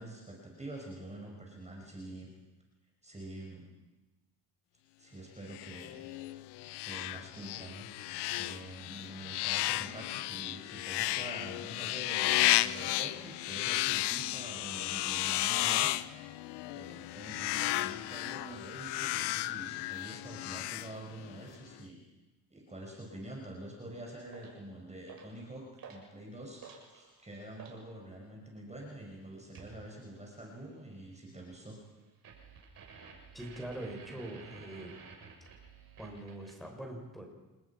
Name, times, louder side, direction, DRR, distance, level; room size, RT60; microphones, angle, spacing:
voice 1, 0.0-2.3 3.0-3.6 5.0-6.0 6.8-7.9 8.3-15.9 16.7-22.0 22.5-26.6 26.9-31.8, right 1 dB, 15° right, -1 dB, 5.9 m, -46 dB
sound 1, 5.5-21.4, left 17 dB, 90° left, 0.8 m, -33 dB
sound 2, 24.3-24.6 25.1-25.4 25.8-26.1 26.4-27.8 29.5-29.8 32.2-36.7, right 5 dB, 60° right, 7.3 m, -52 dB
voice 2, 33.3-35.0 36.0-37.3, right 1 dB, ahead, 1 dB, 6.6 m, -43 dB
29.0 x 20.0 x 6.0 m, 1.1 s
cardioid pair, 85°, 39 cm